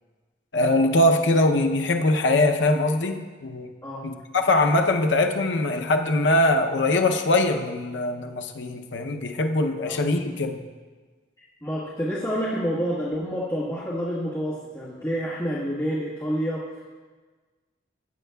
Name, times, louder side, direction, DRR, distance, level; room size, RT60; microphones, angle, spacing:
voice 1, 0.5-3.7 4.0-10.6, left 2 dB, 70° left, 5 dB, 0.6 m, -22 dB
voice 2, 11.6-16.7, equal, 15° left, -9 dB, 1.4 m, -28 dB
15.5 x 8.9 x 2.3 m, 1.4 s
head